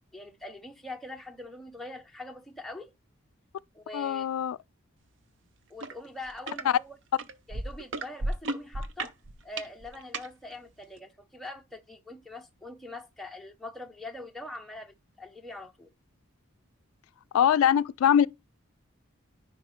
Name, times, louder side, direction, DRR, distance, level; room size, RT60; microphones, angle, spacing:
voice 1, 0.1-2.9 3.7-4.3 5.7-6.9 7.5-9.1 9.4-15.9, left 2 dB, ahead, 0.7 m, -43 dB
voice 2, 3.9-4.6 6.7-6.8 17.3-18.3, left 9 dB, 80° left, 0.3 m, -22 dB
sound 1, 5.8-5.9 6.3-6.6 7.2-10.3 11.0-11.1, right 2 dB, 60° right, 0.6 m, -34 dB
10.0 x 4.7 x 3.1 m
head